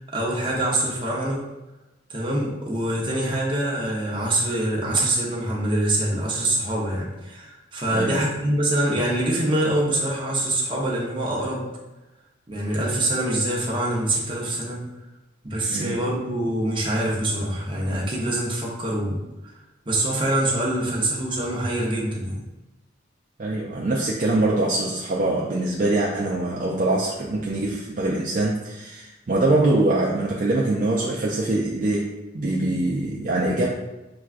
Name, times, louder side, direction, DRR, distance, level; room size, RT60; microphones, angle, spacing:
voice 1, 0.1-1.4 2.1-11.7 12.5-14.8 15.4-19.5 19.9-22.4, right 1 dB, 25° right, -4 dB, 0.8 m, -25 dB
voice 2, 23.4-33.8, right 2 dB, 45° right, -3 dB, 0.4 m, -23 dB
5.8 x 2.3 x 2.4 m, 1.0 s
head